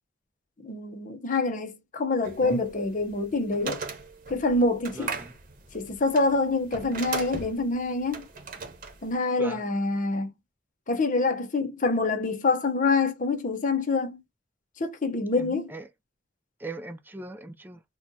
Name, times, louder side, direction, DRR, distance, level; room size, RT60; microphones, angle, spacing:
voice 1, 0.6-3.8 4.3-5.1 5.7-8.2 9.0-10.3 10.9-14.2 14.8-15.7, left 3 dB, 40° left, 0.8 m, -26 dB
sound 1, 2.2-9.1, right 4 dB, 45° right, 1.0 m, -38 dB
voice 2, 4.9-5.3 9.4-9.6 15.3-15.9 16.6-17.8, right 2 dB, 10° right, 0.4 m, -39 dB
4.2 x 2.3 x 2.7 m
head